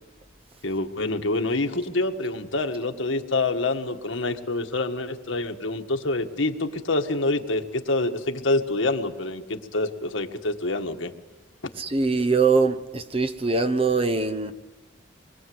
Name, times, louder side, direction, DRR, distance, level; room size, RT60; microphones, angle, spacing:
voice 1, 0.6-11.1, left 2 dB, 70° left, 1.6 m, -26 dB
voice 2, 11.8-14.5, right 4 dB, 30° right, 1.0 m, -22 dB
27.0 x 22.5 x 7.9 m
head